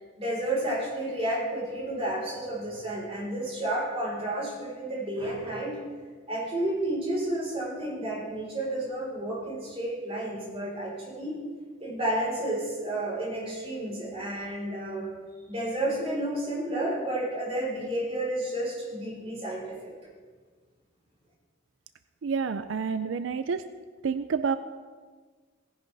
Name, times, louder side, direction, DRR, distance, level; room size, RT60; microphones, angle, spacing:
voice 1, 0.2-5.7 6.3-11.4 11.8-15.1 15.5-19.9, right 1 dB, 30° right, -4 dB, 4.1 m, -31 dB
voice 2, 22.2-23.6 24.0-24.6, right 5 dB, 90° right, 11 dB, 0.4 m, -28 dB
17.0 x 10.5 x 3.4 m, 1.5 s
head